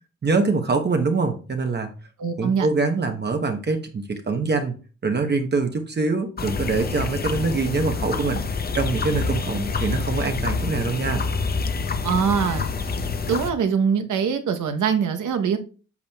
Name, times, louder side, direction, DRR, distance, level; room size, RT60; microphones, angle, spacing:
voice 1, 0.2-1.9 2.4-4.7 5.0-8.4 8.7-11.2, right 4 dB, 35° right, 0.9 m, -24 dB
voice 2, 2.2-2.7 12.0-12.7 13.3-15.6, right 6 dB, 75° right, 1.0 m, -23 dB
sound 1, 6.4-13.5, left 4 dB, 30° left, 0.7 m, -27 dB
8.3 x 6.8 x 2.3 m
cardioid pair, 110°, 30 cm